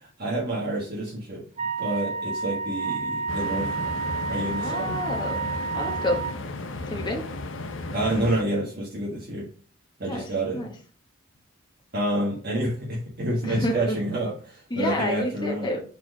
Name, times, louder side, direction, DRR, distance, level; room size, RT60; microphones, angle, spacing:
voice 1, 0.2-1.4 1.8-4.0 4.3-5.0 7.9-9.5 10.0-10.7 11.9-15.7, right 1 dB, 55° right, -4 dB, 1.6 m, -28 dB
Wind instrument woodwind instrument, 1.6-6.4, right 5 dB, 35° right, 0.5 m, -30 dB
sound 1, 3.3-8.4, left 2 dB, 70° left, 0.8 m, -34 dB
voice 2, 4.6-5.4 5.7-6.2 6.9-7.2 10.1-10.7 13.4-14.0 14.7-15.8, left 1 dB, 25° left, 0 dB, 1.0 m, -29 dB
4.5 x 4.4 x 4.8 m, 0.40 s
head